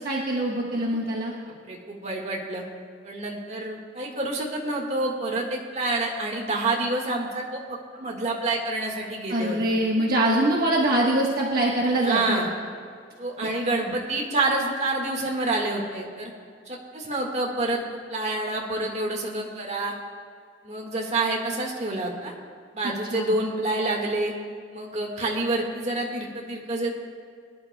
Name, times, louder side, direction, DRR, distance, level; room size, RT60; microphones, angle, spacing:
voice 1, 0.0-1.3 9.3-12.5 23.1-23.3, right 1 dB, 55° right, -3 dB, 1.2 m, -23 dB
voice 2, 1.5-2.6 3.0-9.6 12.0-12.5 13.2-16.3 16.7-19.9 20.6-22.3 22.7-24.3 24.7-26.9, right 2 dB, 40° right, 0 dB, 1.7 m, -28 dB
23.0 x 11.5 x 2.2 m, 2.1 s
head